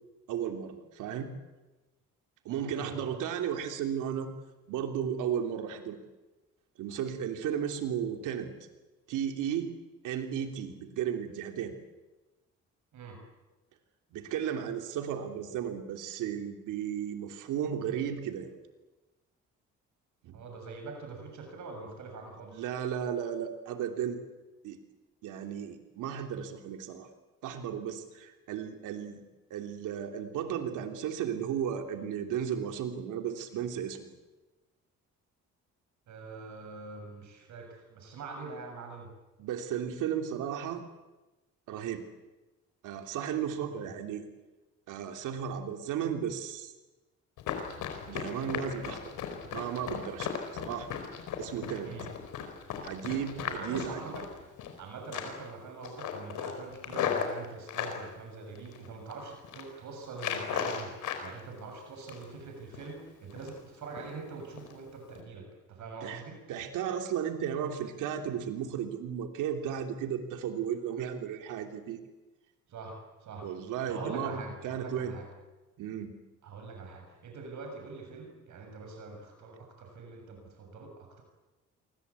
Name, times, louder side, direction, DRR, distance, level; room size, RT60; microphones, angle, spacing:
voice 1, 0.3-1.3 2.4-4.3 4.7-6.0 6.8-8.5 9.1-9.7 10.0-11.8 14.1-18.6 20.2-20.4 22.5-24.2 24.6-24.8 25.2-27.1 27.4-29.2 29.5-34.1 39.4-40.8 41.7-42.0 42.8-44.3 44.9-46.7 48.1-49.1 49.5-50.9 51.4-51.9 52.8-54.0 66.0-66.2 66.5-72.0 73.4-75.1 75.8-76.1, right 8 dB, 90° right, 5 dB, 3.1 m, -34 dB
voice 2, 2.5-3.1 12.9-13.2 20.3-22.6 31.9-32.0 36.1-39.1 43.7-43.9 51.8-52.1 53.5-54.3 54.8-61.0 61.2-66.4 72.7-73.5 73.9-75.3 76.4-81.2, right 4 dB, 70° right, 3 dB, 7.0 m, -44 dB
Run, 47.4-54.8 55.1-55.5 55.8-58.0 58.5-59.1 59.4-59.7 60.1-61.3 61.6-62.4 62.7-62.9 63.3-63.6 64.0-64.1 64.6-64.7 65.1-65.2, left 8 dB, 85° left, 4.7 m, -36 dB
28.5 x 23.5 x 8.4 m, 1.1 s
cardioid pair, 90°, 30 cm